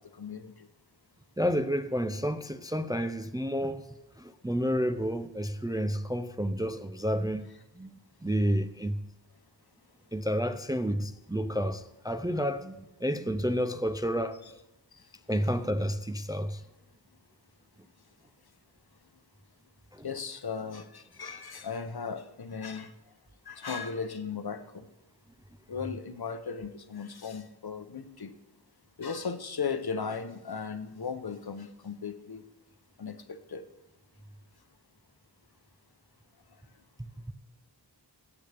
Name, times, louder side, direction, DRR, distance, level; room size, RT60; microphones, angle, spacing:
voice 1, 0.2-0.5 20.0-22.9 23.5-24.9 25.7-28.3 29.0-32.4 33.0-33.6, left 5 dB, 55° left, 0.8 m, -36 dB
voice 2, 1.4-3.9 4.2-7.5 7.8-9.0 10.1-14.6 15.3-16.6 19.9-20.1 37.0-37.3, equal, 10° right, 0.4 m, -30 dB
16.5 x 8.6 x 3.4 m
wide cardioid pair, 55°, 44 cm